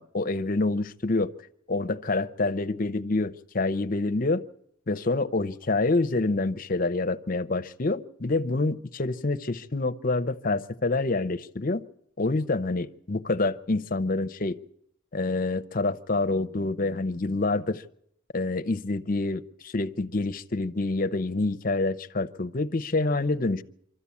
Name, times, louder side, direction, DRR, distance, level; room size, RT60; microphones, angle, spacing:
voice 1, 0.0-1.3 1.7-4.4 4.9-11.8 12.2-14.6 15.1-17.8 18.3-23.6, left 2 dB, 40° left, 10 dB, 0.7 m, -27 dB
24.5 x 13.5 x 8.4 m, 0.72 s
head